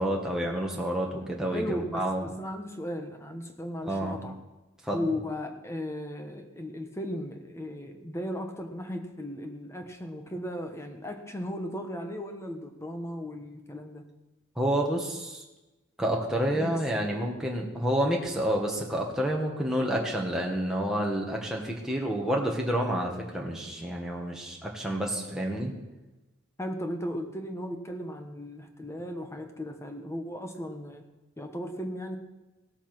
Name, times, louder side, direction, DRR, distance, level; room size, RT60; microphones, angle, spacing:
voice 1, 0.0-2.2 3.8-4.2 4.8-5.1 14.6-15.4 16.0-25.7, right 1 dB, 5° right, -2 dB, 1.8 m, -29 dB
voice 2, 1.5-4.4 4.9-14.0 16.5-16.7 26.6-31.0 31.4-32.2, equal, 15° left, 5 dB, 1.2 m, -36 dB
17.0 x 8.2 x 6.1 m, 1.1 s
head